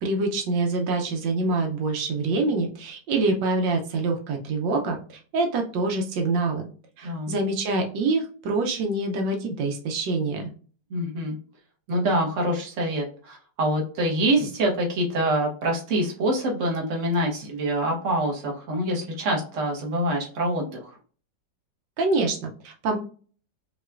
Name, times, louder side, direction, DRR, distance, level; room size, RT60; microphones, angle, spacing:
voice 1, 0.0-6.7 7.0-10.5 22.0-23.0, right 3 dB, 85° right, 2 dB, 1.4 m, -25 dB
voice 2, 7.0-7.3 10.9-11.4 11.9-21.0, right 1 dB, 45° right, -1 dB, 1.3 m, -25 dB
5.4 x 2.9 x 2.4 m, 0.41 s
omnidirectional pair, 1.9 m